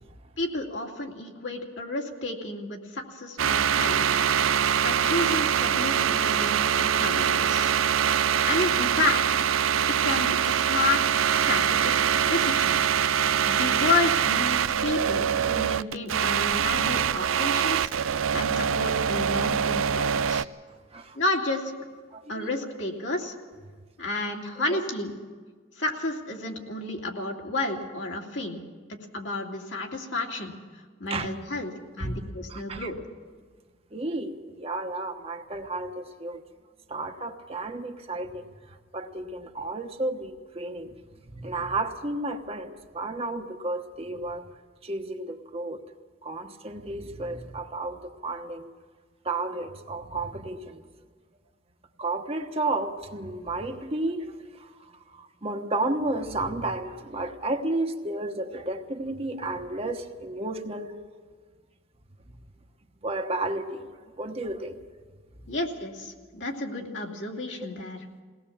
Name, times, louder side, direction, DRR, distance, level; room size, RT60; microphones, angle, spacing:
voice 1, 0.4-4.2 4.8-6.6 7.0-7.7 8.4-9.4 9.9-11.0 11.3-11.9 12.2-12.8 13.5-20.5 21.1-21.6 22.3-23.3 24.0-25.1 25.8-28.6 28.9-30.5 31.0-31.7 32.0-33.0 65.5-68.0, left 2 dB, 65° left, 0 dB, 2.7 m, -31 dB
sound 1, 3.4-20.4, right 8 dB, 85° right, 0.5 m, -24 dB
voice 2, 22.1-22.5 24.7-24.8 31.1-31.3 32.0-32.2 32.5-32.9 33.9-36.4 36.9-41.0 41.2-44.5 44.8-45.8 46.2-48.7 49.2-50.8 52.0-61.0 63.0-64.8, right 2 dB, 30° right, 4 dB, 1.2 m, -32 dB
22.0 x 18.0 x 7.2 m, 1.5 s
head